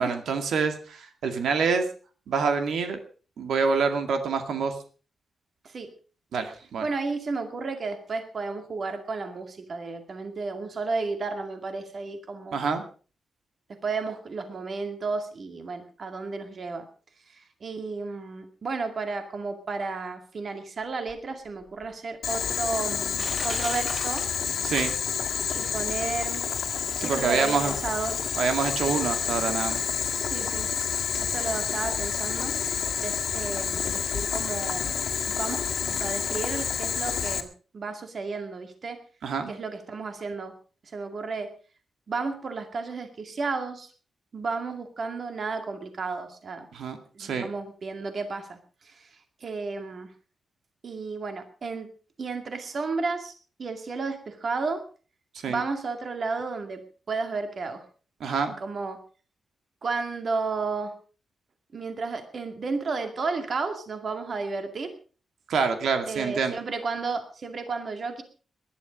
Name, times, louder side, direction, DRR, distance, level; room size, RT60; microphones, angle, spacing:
voice 1, 0.0-1.8 2.3-3.0 3.4-4.7 6.3-6.9 12.5-12.8 24.6-25.0 27.0-27.7 28.4-29.8 39.2-39.5 46.7-47.5 55.4-55.6 58.2-58.6 65.5-66.5, right 5 dB, 80° right, 7 dB, 2.2 m, -26 dB
voice 2, 6.8-12.6 13.8-16.9 17.3-24.2 25.5-26.5 27.0-28.2 30.1-30.7 31.2-32.6 33.0-35.0 35.3-39.0 39.5-40.5 40.8-41.5 42.1-43.9 44.3-46.7 47.1-50.1 50.8-51.9 52.2-53.3 53.6-54.8 55.5-57.8 58.6-59.0 59.8-60.9 61.7-64.9 66.1-68.2, right 4 dB, 40° right, 7 dB, 2.3 m, -33 dB
Crushing, 21.1-21.2 21.8-21.9 22.6-22.7 23.2-25.4 25.7-25.8, right 1 dB, 20° right, 4.5 m, -37 dB
Boiling, 22.2-37.4, left 7 dB, 75° left, 1.8 m, -29 dB
19.5 x 11.5 x 5.2 m, 0.39 s
wide cardioid pair, 170°, 0 cm